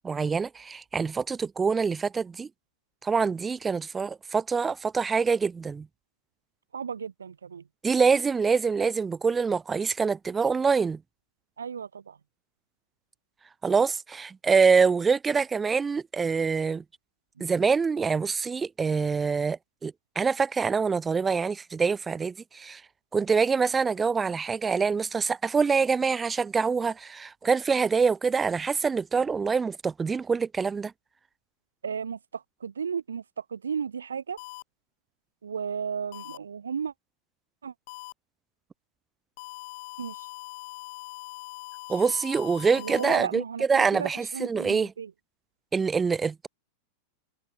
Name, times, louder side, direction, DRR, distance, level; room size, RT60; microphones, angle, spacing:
voice 1, 0.0-2.5 3.0-5.9 7.8-11.0 13.6-16.8 17.4-22.8 23.1-30.9 41.9-43.4 43.7-44.9 45.7-46.5, right 5 dB, 15° right, 1.1 m, -25 dB
voice 2, 6.7-7.6 11.6-12.2 17.4-17.5 31.8-34.4 35.4-36.9 37.6-37.7 40.0-40.3 42.0-42.1 42.7-45.1, right 6 dB, 70° right, 3.2 m, -34 dB
sound 1, 34.4-34.6 36.1-36.4 37.9-38.1 39.4-43.2, left 24 dB, 50° left, 4.4 m, -42 dB
figure-of-eight pair, 90°, 0 cm